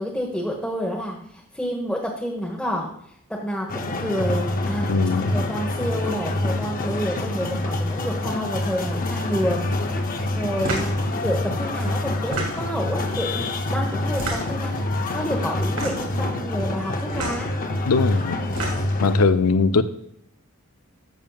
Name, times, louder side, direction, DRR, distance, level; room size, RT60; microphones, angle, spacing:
voice 1, 0.0-2.9 3.3-4.9 5.3-9.7 10.3-10.9 11.2-14.7 15.1-17.5 19.6-19.8, equal, 5° left, -3 dB, 1.0 m, -29 dB
sound 1, 3.7-19.2, left 1 dB, 40° left, 0.7 m, -26 dB
voice 2, 4.9-5.3 17.9-18.4 19.0-19.8, left 4 dB, 85° left, 11 dB, 0.5 m, -20 dB
sound 2, 10.6-11.0 12.1-12.8 14.1-14.7 15.7-16.2 17.1-17.4 18.3-19.0, right 2 dB, 90° right, 2.7 m, -29 dB
12.5 x 7.2 x 2.3 m, 0.71 s
head